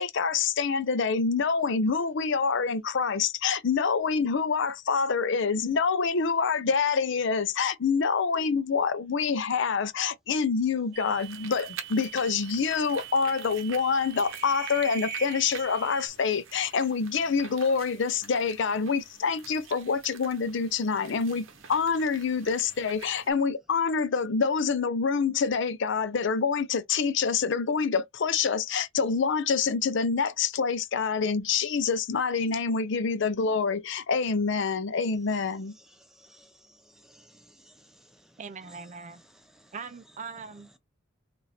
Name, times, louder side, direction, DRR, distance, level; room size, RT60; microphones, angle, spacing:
voice 1, 0.0-35.7, left 5 dB, 65° left, 0.5 m, -26 dB
sound 1, 10.9-16.1, right 7 dB, 55° right, 1.1 m, -41 dB
sound 2, 11.2-23.3, right 7 dB, 75° right, 0.8 m, -47 dB
voice 2, 35.8-38.4 38.7-38.8 39.1-39.7, equal, ahead, 0.7 m, -58 dB
voice 3, 38.4-39.2 39.7-40.7, right 5 dB, 35° right, 0.4 m, -41 dB
3.1 x 2.5 x 4.2 m
head